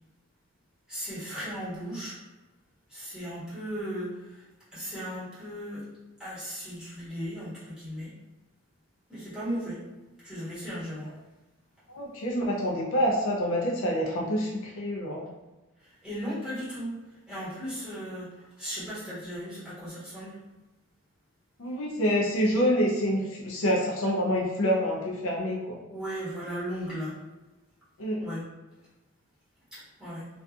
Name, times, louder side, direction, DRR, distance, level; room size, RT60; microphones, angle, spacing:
voice 1, 0.9-2.2 2.9-4.4 4.7-5.8 6.2-8.1 9.1-9.8 10.2-11.1 15.8-16.9 17.3-20.4 25.9-27.2 28.2-28.4 29.7-30.3, equal, 5° right, -12 dB, 1.3 m, -36 dB
voice 2, 11.9-15.2 21.6-25.8 28.0-28.2, equal, 60° left, -2 dB, 0.4 m, -27 dB
2.5 x 2.3 x 2.3 m, 1.1 s
head